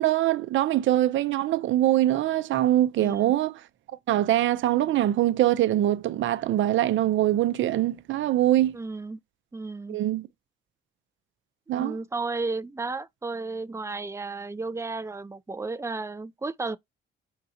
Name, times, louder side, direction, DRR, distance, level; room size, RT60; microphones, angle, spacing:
voice 1, 0.0-3.5 4.1-8.8 9.9-10.3 11.7-12.0, right 13 dB, 75° right, 0.7 m, -23 dB
voice 2, 3.0-3.3 8.7-9.2 9.5-10.0 11.7-16.8, right 3 dB, 15° right, 0.5 m, -33 dB
4.4 x 3.8 x 2.8 m
cardioid pair, 90°, 20 cm